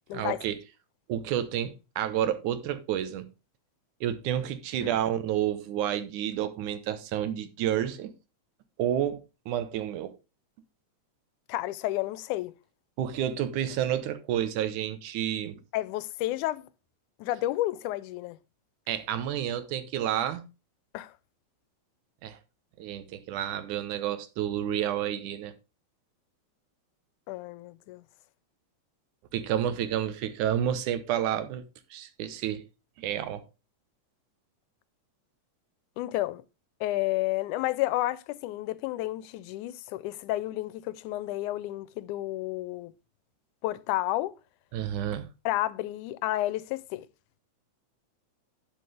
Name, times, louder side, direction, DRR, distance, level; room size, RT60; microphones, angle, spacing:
voice 1, 0.1-0.6 1.1-3.3 4.0-8.1 8.8-9.2 9.5-10.1 13.0-15.6 18.9-20.4 22.2-22.4 22.8-25.5 29.3-31.6 31.9-32.6 33.0-33.4 44.7-45.3, right 10 dB, 80° right, 2.4 m, -30 dB
voice 2, 11.5-12.5 15.7-16.7 17.2-18.4 20.9-21.1 27.3-28.0 36.0-36.4 36.8-42.9 43.6-44.3 45.5-47.1, left 16 dB, 90° left, 2.1 m, -31 dB
11.5 x 6.1 x 3.3 m
omnidirectional pair, 3.5 m